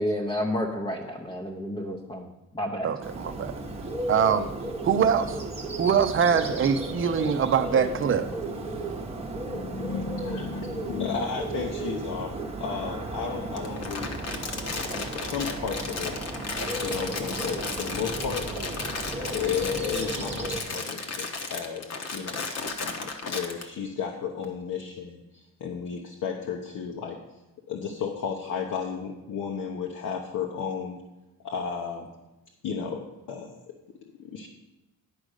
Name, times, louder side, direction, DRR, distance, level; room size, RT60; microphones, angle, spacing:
voice 1, 0.0-2.3 2.5-2.9, equal, 15° left, 0 dB, 0.7 m, -30 dB
voice 2, 2.8-3.6 4.1-4.5 4.8-5.4 5.8-8.3, right 7 dB, 40° right, 9 dB, 0.6 m, -23 dB
Bird, 3.0-20.6, right 2 dB, 20° right, 0.9 m, -34 dB
voice 3, 9.5-14.2 14.5-16.1 16.8-19.0 19.3-22.5 22.8-27.2 27.7-31.0 31.4-32.1 32.6-33.7 34.2-34.5, left 6 dB, 65° left, 1 dB, 1.0 m, -33 dB
Crumpling crinkling, 13.5-23.6, left 4 dB, 50° left, 1.1 m, -34 dB
10.5 x 5.1 x 6.5 m, 0.99 s
cardioid pair, 160°, 34 cm